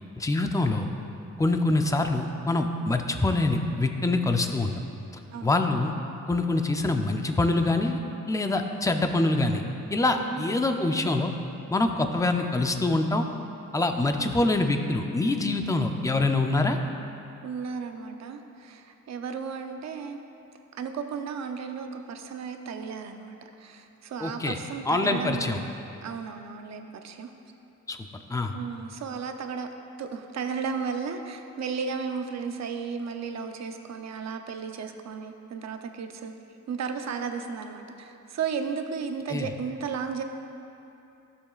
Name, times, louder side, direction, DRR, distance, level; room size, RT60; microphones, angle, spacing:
voice 1, 0.2-0.9 1.4-4.7 5.4-5.9 6.3-8.0 8.3-9.6 9.9-11.3 11.7-13.3 13.7-16.8 24.2-24.6 24.9-25.6 27.9-28.0 28.3-28.5 39.3-39.5, left 2 dB, 10° left, 5 dB, 0.4 m, -25 dB
voice 2, 10.1-10.5 17.4-20.2 20.7-25.7 26.0-27.3 28.5-29.7 30.0-36.3 36.7-40.2, right 6 dB, 60° right, 6 dB, 0.6 m, -34 dB
15.5 x 7.0 x 2.4 m, 2.8 s
wide cardioid pair, 150°, 30 cm